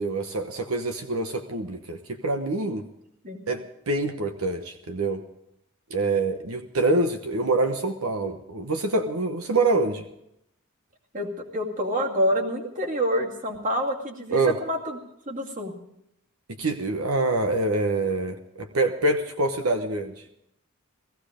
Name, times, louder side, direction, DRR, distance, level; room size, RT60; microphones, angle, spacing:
voice 1, 0.0-2.8 3.5-5.2 5.9-10.1 14.3-14.6 16.6-20.1, right 2 dB, 90° right, 6 dB, 1.1 m, -25 dB
voice 2, 11.1-15.0 15.3-15.7, equal, 40° right, 1 dB, 2.3 m, -27 dB
18.0 x 15.5 x 5.1 m, 0.79 s
head